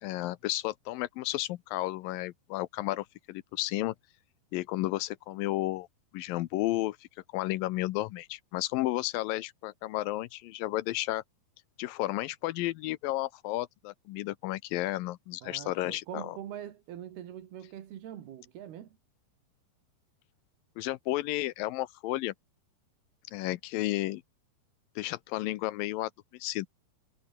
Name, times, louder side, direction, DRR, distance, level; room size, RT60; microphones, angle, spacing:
voice 1, 0.0-4.0 4.5-5.9 6.1-7.0 7.3-11.2 11.8-16.4 20.8-22.3 23.3-24.2 25.0-26.7, left 17 dB, 75° left, 2.2 m, -32 dB
voice 2, 15.4-19.0, right 11 dB, 75° right, 3.9 m, -43 dB
omnidirectional pair, 4.6 m